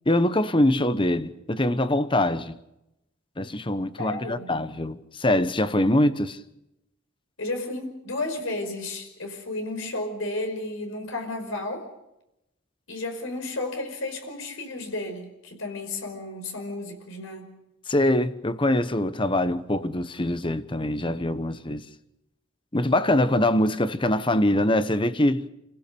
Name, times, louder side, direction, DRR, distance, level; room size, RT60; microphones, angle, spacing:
voice 1, 0.1-2.6 3.4-6.4 17.9-21.8 22.7-25.4, left 1 dB, 25° left, 1.0 m, -23 dB
voice 2, 4.0-4.5 7.4-11.9 12.9-17.5, left 2 dB, 75° left, 5.4 m, -33 dB
29.0 x 16.0 x 7.0 m
head